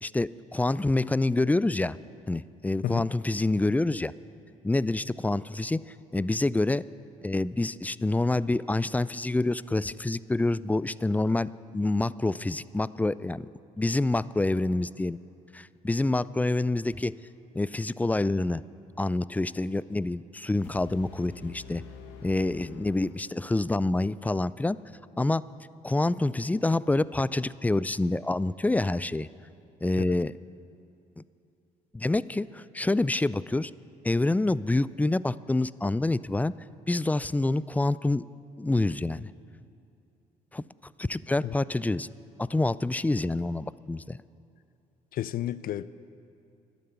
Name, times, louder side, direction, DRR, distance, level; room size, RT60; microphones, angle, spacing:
voice 1, 0.0-2.0 2.3-4.1 4.6-5.8 6.1-6.8 7.2-13.5 13.8-15.2 15.5-17.1 17.5-18.6 19.0-21.8 22.2-24.8 25.2-25.4 25.8-29.3 29.8-30.3 31.9-33.7 34.0-36.5 36.9-38.2 38.6-39.3 40.5-40.6 41.0-42.1 42.4-44.2, left 2 dB, 10° left, 0.3 m, -27 dB
sound 1, 20.6-23.6, left 5 dB, 85° left, 1.3 m, -47 dB
voice 2, 45.1-45.9, left 12 dB, 60° left, 0.5 m, -32 dB
12.0 x 9.2 x 9.6 m
supercardioid pair, 60°, 17 cm